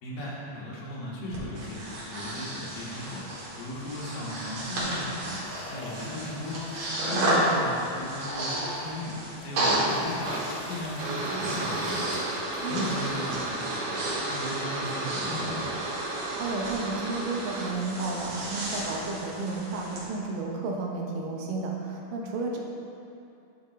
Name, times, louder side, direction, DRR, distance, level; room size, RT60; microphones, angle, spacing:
voice 1, 0.0-3.2 3.6-5.4 5.7-6.6 7.0-9.2 9.4-10.3 10.7-12.2 12.7-13.9 14.3-15.7, left 1 dB, 80° left, -6 dB, 3.1 m, -36 dB
Breathing, 1.3-20.0, right 1 dB, 50° right, 2.3 m, -33 dB
sound 1, 5.4-7.6 7.9-8.1 9.2-14.2, left 2 dB, 65° left, 2.0 m, -46 dB
voice 2, 7.1-7.5 12.6-12.9 16.4-22.6, right 3 dB, 85° right, -1 dB, 2.6 m, -32 dB
sound 2, 10.2-17.7, right 2 dB, 65° right, 1.5 m, -33 dB
11.0 x 6.0 x 3.0 m, 2.7 s
omnidirectional pair, 3.8 m